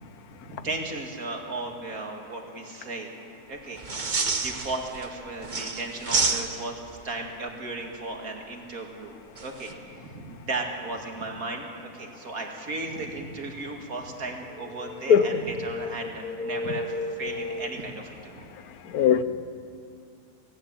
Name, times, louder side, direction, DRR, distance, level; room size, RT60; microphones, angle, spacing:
voice 1, 0.3-3.1 3.5-3.8 4.4-9.1 9.4-18.5, right 2 dB, 65° right, 2 dB, 2.6 m, -35 dB
sound 1, 3.8-5.1 5.4-6.9 9.4-9.7, right 4 dB, 35° right, 1.2 m, -28 dB
voice 2, 14.8-17.7 18.9-19.2, left 7 dB, 75° left, 12 dB, 1.3 m, -25 dB
18.0 x 17.0 x 8.9 m, 2.4 s
omnidirectional pair, 1.6 m